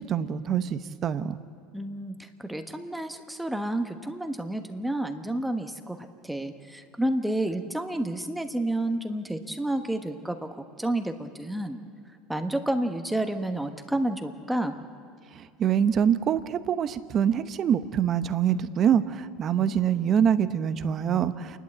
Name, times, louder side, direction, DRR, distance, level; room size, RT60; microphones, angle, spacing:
voice 1, 0.0-1.4 15.3-21.6, right 8 dB, 40° right, 12 dB, 0.9 m, -25 dB
voice 2, 1.7-11.8 12.3-14.7, right 1 dB, 5° right, 6 dB, 1.2 m, -30 dB
28.0 x 12.0 x 7.9 m, 2.3 s
supercardioid pair, 100°, 0 cm